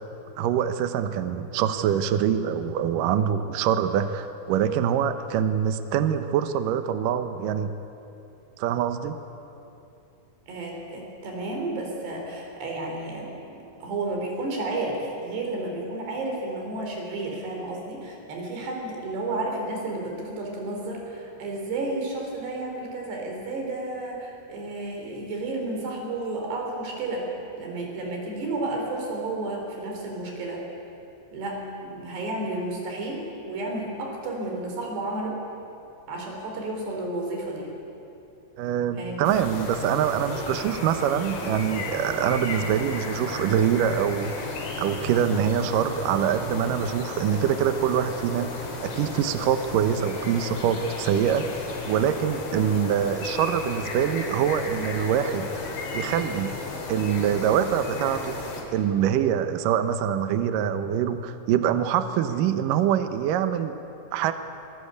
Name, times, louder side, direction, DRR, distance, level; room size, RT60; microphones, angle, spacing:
voice 1, 0.4-7.7 8.6-9.2 38.6-44.3 44.8-48.5 48.8-51.4 51.9-55.5 55.9-56.5 56.9-58.4 58.7-63.8 64.1-64.3, right 9 dB, 85° right, 10 dB, 1.9 m, -24 dB
voice 2, 10.5-27.3 27.6-30.6 31.3-35.4 36.1-37.7 39.0-39.3, right 2 dB, 65° right, 0 dB, 6.1 m, -32 dB
sound 1, 39.2-58.6, left 3 dB, 70° left, 5.6 m, -34 dB
25.0 x 19.5 x 8.4 m, 2.8 s
omnidirectional pair, 5.2 m